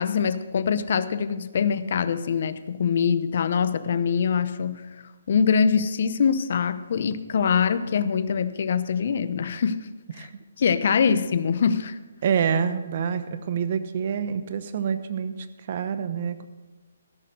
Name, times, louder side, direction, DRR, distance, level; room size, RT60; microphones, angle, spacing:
voice 1, 0.0-4.8 5.3-9.9 10.2-10.3 10.6-12.0, left 6 dB, 55° left, 14 dB, 0.7 m, -23 dB
voice 2, 12.2-15.3 15.7-16.4, right 7 dB, 45° right, 11 dB, 1.0 m, -26 dB
15.5 x 6.7 x 6.4 m, 1.3 s
hypercardioid pair, 150°, 0 cm